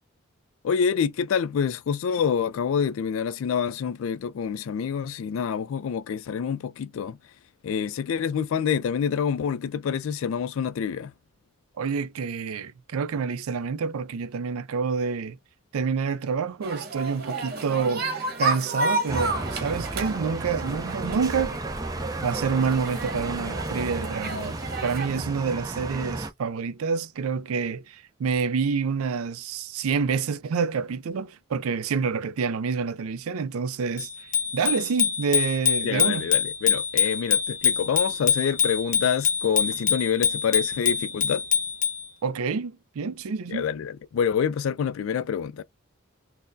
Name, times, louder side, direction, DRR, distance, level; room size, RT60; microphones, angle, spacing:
voice 1, 0.6-7.2 7.6-11.1 35.8-41.4 43.5-45.6, left 7 dB, 65° left, 0.3 m, -27 dB
voice 2, 11.8-15.4 15.7-18.1 18.4-21.6 22.2-34.1 34.5-36.3 42.2-43.6, right 5 dB, 80° right, 0.4 m, -28 dB
sound 1, 16.6-25.2, right 2 dB, 45° right, 1.0 m, -32 dB
sound 2, 19.1-26.3, right 2 dB, 15° right, 0.4 m, -33 dB
Bicycle bell, 34.0-42.1, left 8 dB, 35° left, 1.0 m, -25 dB
4.1 x 2.0 x 2.6 m
head